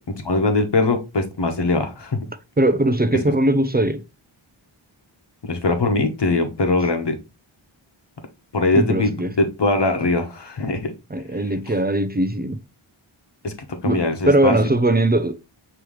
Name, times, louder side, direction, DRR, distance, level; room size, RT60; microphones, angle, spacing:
voice 1, 0.2-2.2 5.4-7.1 8.5-10.9 13.4-13.5 13.8-14.6, left 2 dB, 55° left, 1.2 m, -21 dB
voice 2, 2.6-4.0 8.7-9.3 11.1-12.6 13.8-15.4, right 1 dB, 20° right, 0.5 m, -20 dB
5.4 x 3.1 x 3.1 m
wide cardioid pair, 60°, 49 cm